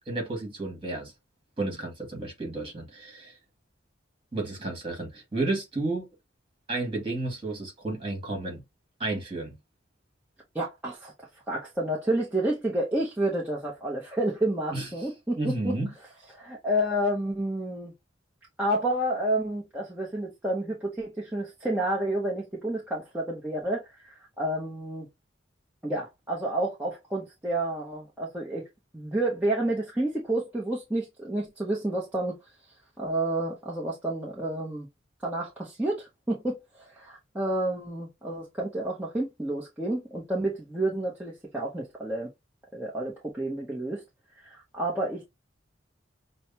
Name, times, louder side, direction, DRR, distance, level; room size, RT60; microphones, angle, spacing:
voice 1, 0.1-1.1 1.6-3.4 4.3-6.1 6.7-8.6 9.0-9.6 14.7-14.9 15.4-15.9, right 2 dB, 25° right, 1.8 m, -32 dB
voice 2, 10.5-11.1 11.5-15.7 16.3-17.9 18.6-25.1 25.8-28.7 28.9-32.3 33.0-34.9 35.2-36.6 36.9-42.3 42.7-44.0 44.4-45.3, right 1 dB, 10° right, 0.8 m, -30 dB
6.2 x 2.1 x 2.7 m
head